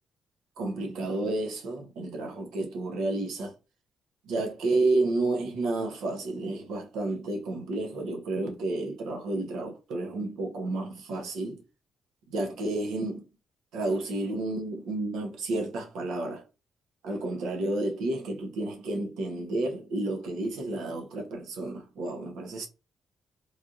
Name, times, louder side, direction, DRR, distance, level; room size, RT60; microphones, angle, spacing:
voice 1, 0.6-3.5 4.3-11.6 12.3-13.2 13.7-16.4 17.0-22.7, right 2 dB, 90° right, 0.8 m, -31 dB
3.3 x 2.6 x 2.4 m
cardioid pair, 95°, 0 cm